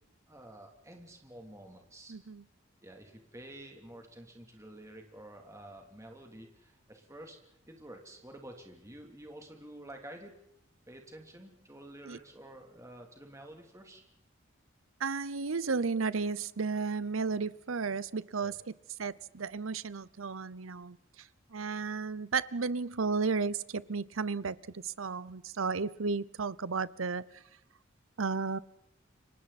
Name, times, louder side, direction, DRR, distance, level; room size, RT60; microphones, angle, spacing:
voice 1, 0.3-2.1 2.8-7.4 7.7-10.4 10.9-14.0 18.4-18.6, right 1 dB, 15° right, 2 dB, 3.2 m, -50 dB
voice 2, 2.1-2.4 12.1-12.2 15.0-18.7 19.0-27.4 28.2-28.6, right 4 dB, 85° right, 18 dB, 0.8 m, -33 dB
30.0 x 24.5 x 4.3 m, 0.77 s
head